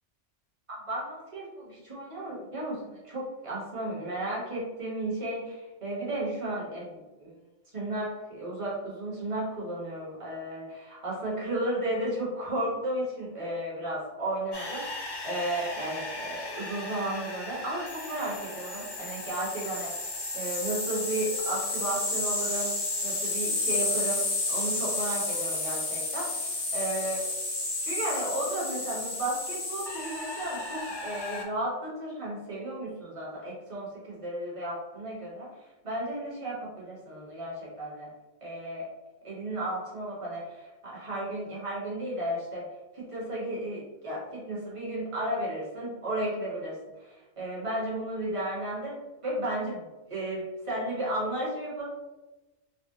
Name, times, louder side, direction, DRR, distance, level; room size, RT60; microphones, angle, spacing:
voice 1, 0.7-7.3 7.7-22.7 23.0-27.3 27.8-35.5 35.8-38.1 38.4-38.9 39.2-42.7 42.9-51.9, right 1 dB, 30° right, -6 dB, 1.0 m, -34 dB
sound 1, 14.5-31.4, left 2 dB, 45° left, 0.3 m, -32 dB
3.5 x 2.1 x 2.7 m, 1.1 s
omnidirectional pair, 1.2 m